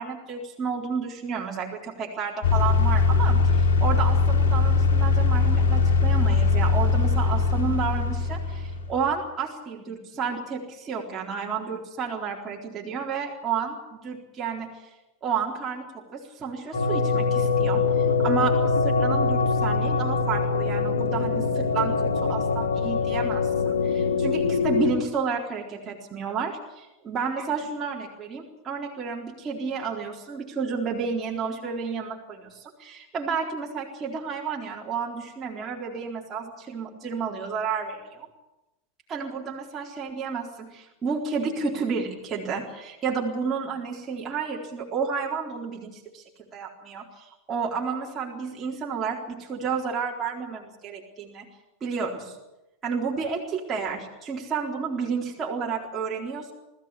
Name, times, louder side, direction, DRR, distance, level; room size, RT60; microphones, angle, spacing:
voice 1, 0.0-14.7 15.2-38.3 39.1-46.2 46.5-51.5 51.8-52.4 52.8-56.5, right 5 dB, 30° right, -3 dB, 4.1 m, -31 dB
sound 1, 2.4-9.0, left 4 dB, 70° left, 3.3 m, -21 dB
sound 2, 16.7-24.9, left 4 dB, 90° left, 2.6 m, -23 dB
20.5 x 15.5 x 9.9 m, 0.98 s
hypercardioid pair, 100°, 0 cm